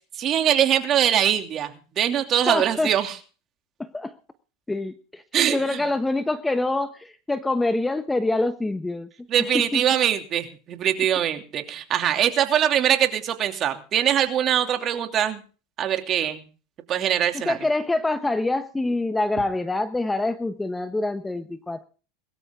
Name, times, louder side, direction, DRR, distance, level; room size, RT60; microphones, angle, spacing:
voice 1, 0.2-1.7 2.0-3.1 5.3-5.8 9.3-15.4 15.8-16.5 16.9-17.6, right 10 dB, 40° right, 6 dB, 2.8 m, -22 dB
voice 2, 2.5-2.9 3.8-4.1 4.7-5.2 5.5-9.1 9.7-9.8 17.3-21.8, left 2 dB, 10° left, 10 dB, 1.2 m, -25 dB
21.5 x 13.0 x 3.8 m, 0.36 s
supercardioid pair, 120°, 0 cm